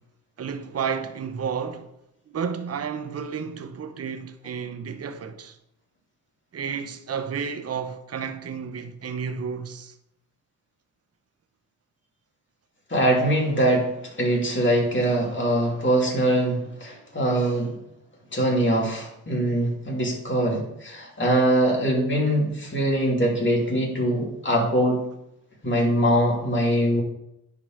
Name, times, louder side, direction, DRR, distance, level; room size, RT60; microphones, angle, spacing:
voice 1, 0.4-1.9 2.3-5.6 6.5-9.9, right 6 dB, 40° right, 0.8 m, -31 dB
voice 2, 12.9-17.7 18.3-25.0 25.6-27.0, right 1 dB, 30° left, 2.9 m, -22 dB
10.0 x 3.9 x 4.7 m
supercardioid pair, 55°, 37 cm